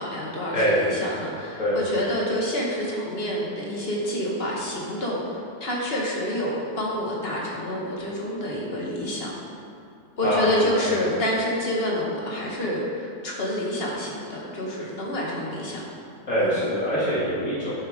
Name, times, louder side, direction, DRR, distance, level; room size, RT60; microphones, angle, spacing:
voice 1, 0.0-9.3 10.2-15.8 16.4-16.6, left 1 dB, 40° left, -4 dB, 1.9 m, -28 dB
voice 2, 0.5-0.9 1.6-1.9 10.2-10.9 16.3-17.7, equal, 55° left, -10 dB, 2.4 m, -24 dB
11.0 x 7.6 x 3.7 m, 2.5 s
omnidirectional pair, 1.6 m